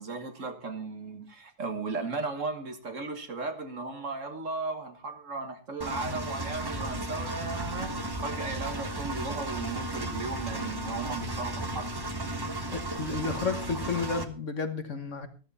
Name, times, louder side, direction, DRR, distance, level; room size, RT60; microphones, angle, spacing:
voice 1, 0.0-11.9, right 3 dB, 50° right, 7 dB, 1.8 m, -36 dB
Engine, 5.8-14.2, right 1 dB, 15° right, 1.1 m, -35 dB
Accelerating revving vroom, 6.6-13.8, left 2 dB, 75° left, 4.8 m, -46 dB
voice 2, 12.7-15.3, left 4 dB, 50° left, 8 dB, 1.6 m, -32 dB
13.5 x 13.5 x 4.2 m, 0.36 s
omnidirectional pair, 1.7 m